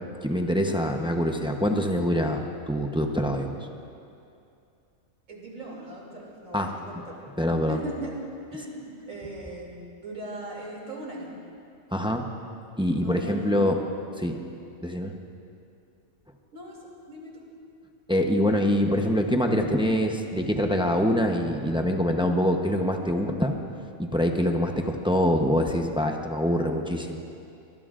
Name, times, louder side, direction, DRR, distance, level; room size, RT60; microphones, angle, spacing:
voice 1, 0.2-3.6 6.5-6.7 7.4-7.8 11.9-12.3 12.8-13.8 14.2-14.4 14.8-15.1 18.1-23.5 24.0-27.2, equal, 5° right, 3 dB, 0.6 m, -24 dB
voice 2, 5.3-7.3 7.7-8.2 8.5-11.3 13.0-13.8 16.5-17.5, right 1 dB, 70° right, -3 dB, 3.3 m, -39 dB
23.5 x 19.5 x 2.5 m, 2.5 s
omnidirectional pair, 1.5 m